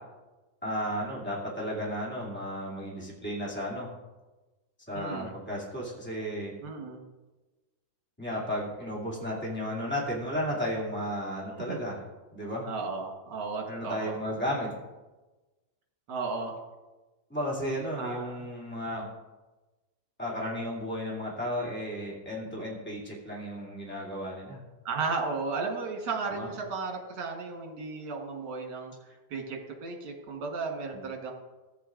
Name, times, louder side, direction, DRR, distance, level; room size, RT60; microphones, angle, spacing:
voice 1, 0.6-3.9 4.9-6.5 8.2-12.0 12.3-12.7 13.7-14.7 17.3-19.1 20.2-24.6 26.3-26.5 30.9-31.0, equal, 5° left, -6 dB, 2.3 m, -34 dB
voice 2, 4.9-5.3 6.6-7.0 11.5-11.8 12.6-14.2 16.1-16.6 18.0-18.5 24.9-31.3, right 4 dB, 65° right, 1 dB, 2.0 m, -35 dB
14.5 x 8.9 x 2.5 m, 1.2 s
omnidirectional pair, 2.1 m